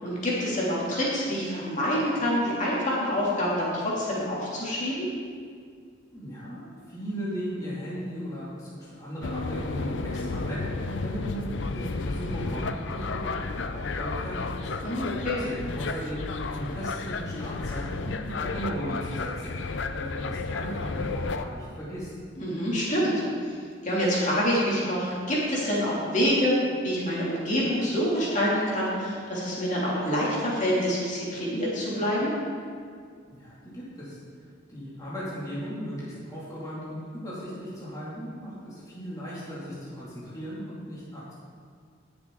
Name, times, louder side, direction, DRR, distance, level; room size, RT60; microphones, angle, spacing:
voice 1, 0.0-5.1 14.8-15.4 22.4-23.5 23.8-26.6 26.8-32.3, equal, 40° left, -6 dB, 2.8 m, -26 dB
voice 2, 6.1-14.7 15.4-22.1 33.3-34.2 34.7-41.3, equal, 20° left, -9 dB, 2.5 m, -37 dB
sound 1, 9.2-21.4, left 3 dB, 70° left, 0.6 m, -32 dB
18.0 x 6.9 x 3.8 m, 2.1 s
head